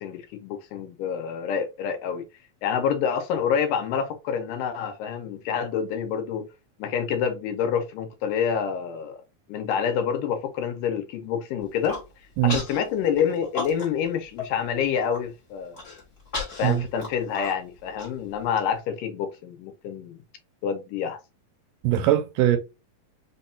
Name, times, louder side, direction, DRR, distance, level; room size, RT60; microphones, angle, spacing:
voice 1, 0.0-2.2 2.6-6.5 6.8-9.2 9.5-12.0 12.4-15.8 16.6-20.2 20.6-21.2, left 7 dB, 80° left, 2.1 m, -27 dB
Human voice, 11.6-12.0 12.5-12.8 13.2-14.1 14.4-14.5 14.9-15.2 15.7-18.6, left 3 dB, 55° left, 0.8 m, -34 dB
voice 2, 21.8-22.6, right 13 dB, 80° right, 2.1 m, -21 dB
5.3 x 2.3 x 2.6 m
omnidirectional pair, 3.9 m